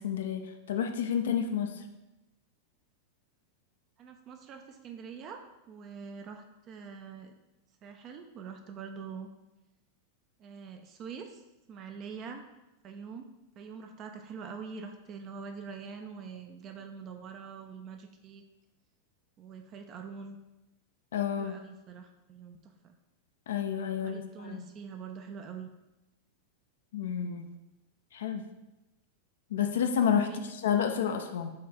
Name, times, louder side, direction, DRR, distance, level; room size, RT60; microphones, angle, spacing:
voice 1, 0.0-1.8 21.1-21.6 23.5-24.7 26.9-27.5 28.1-28.5 29.5-31.5, left 8 dB, 60° left, 6 dB, 0.3 m, -30 dB
voice 2, 4.0-7.3 7.8-9.3 10.4-11.4 11.7-12.4 12.8-13.3 13.6-18.4 19.4-20.4 21.4-23.0 24.0-25.7 30.2-30.5, right 6 dB, 35° right, 5 dB, 0.4 m, -44 dB
4.3 x 3.2 x 3.7 m, 1.0 s
figure-of-eight pair, 90°, 0 cm